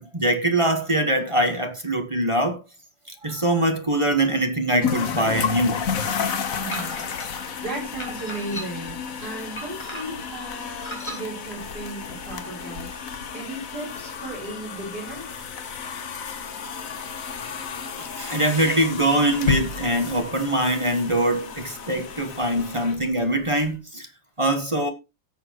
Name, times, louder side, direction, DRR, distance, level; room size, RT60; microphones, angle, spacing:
voice 1, 0.0-2.6 3.1-5.9 18.0-24.1 24.4-24.9, right 1 dB, 20° right, 1.2 m, -23 dB
sound 1, 4.8-23.7, left 6 dB, 50° left, 1.4 m, -32 dB
voice 2, 6.6-7.1 7.6-13.1 13.3-15.3, right 2 dB, 55° right, 4.5 m, -35 dB
sound 2, 6.7-7.3 8.0-8.9 9.6-10.3 10.8-11.2, equal, 15° left, 2.4 m, -36 dB
17.5 x 6.8 x 2.9 m
omnidirectional pair, 2.0 m